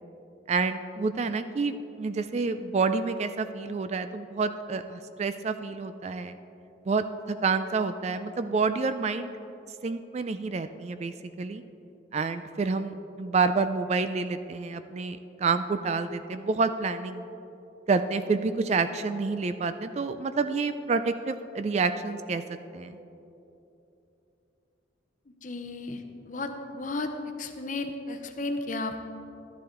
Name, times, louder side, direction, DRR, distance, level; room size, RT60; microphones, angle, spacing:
voice 1, 0.5-6.4 6.9-9.3 9.8-11.6 12.1-17.2 17.9-22.4 22.7-23.0, right 4 dB, 35° right, 11 dB, 0.3 m, -28 dB
voice 2, 25.4-27.1 27.4-29.1, left 2 dB, 40° left, 6 dB, 0.7 m, -34 dB
12.0 x 10.5 x 3.8 m, 2.9 s
head